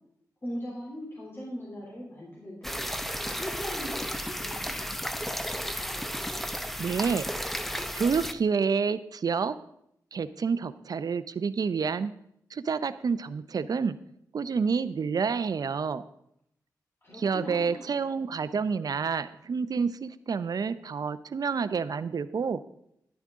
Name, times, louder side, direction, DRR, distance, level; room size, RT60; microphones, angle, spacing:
voice 1, 0.4-2.8 3.3-5.4 17.0-17.9, equal, 35° left, -4 dB, 3.1 m, -40 dB
sound 1, 2.6-8.3, equal, 5° left, 0.7 m, -33 dB
voice 2, 6.8-7.2 7.9-9.6 10.1-12.1 12.5-14.0 14.3-16.0 17.2-22.6, right 5 dB, 60° right, 13 dB, 0.6 m, -28 dB
11.5 x 10.5 x 3.7 m, 0.74 s
cardioid pair, 65°, 7 cm